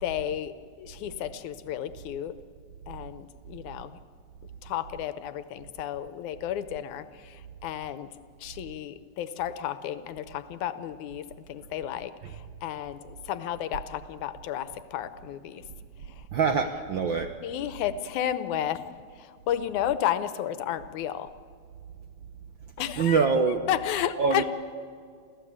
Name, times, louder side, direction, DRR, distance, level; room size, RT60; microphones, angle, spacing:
voice 1, 0.0-0.5 0.8-2.3 2.9-4.0 4.6-7.1 7.6-8.1 8.4-12.1 12.6-13.0 13.3-15.6 17.4-18.8 19.5-21.3 22.8-23.3 23.7-24.4, left 11 dB, 85° left, 12 dB, 2.4 m, -32 dB
voice 2, 16.3-17.3 23.0-23.6 24.2-24.4, right 5 dB, 65° right, 6 dB, 1.2 m, -24 dB
28.0 x 15.5 x 8.7 m, 2.2 s
omnidirectional pair, 3.3 m